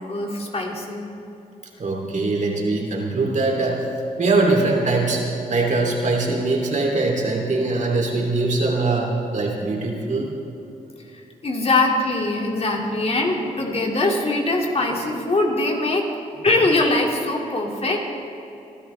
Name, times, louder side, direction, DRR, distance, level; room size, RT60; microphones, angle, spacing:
voice 1, 0.1-1.1 11.4-16.1 16.4-18.0, left 2 dB, 45° left, 0 dB, 2.5 m, -22 dB
voice 2, 1.8-3.8 4.2-5.2 5.5-10.3, right 3 dB, 55° right, 0 dB, 3.0 m, -22 dB
24.5 x 12.0 x 3.4 m, 2.9 s
cardioid pair, 75°, 15 cm